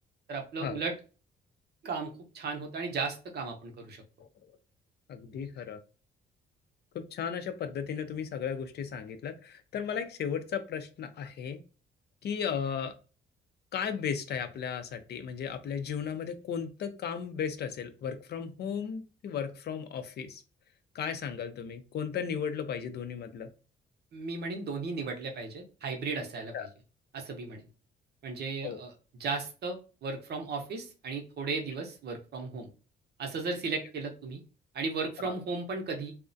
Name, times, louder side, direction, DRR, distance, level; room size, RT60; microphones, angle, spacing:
voice 1, 0.3-0.9 1.8-4.0 24.1-26.5 27.1-27.6 28.2-28.9 29.2-32.7 33.2-34.4 34.7-36.1, right 4 dB, 55° right, 3 dB, 0.6 m, -35 dB
voice 2, 5.1-5.8 6.9-11.6 12.2-12.9 13.7-20.4 20.9-23.5 26.5-26.7 28.6-28.8 35.2-35.3, left 7 dB, 55° left, 9 dB, 0.4 m, -35 dB
2.3 x 2.0 x 2.5 m, 0.35 s
cardioid pair, 90°, 20 cm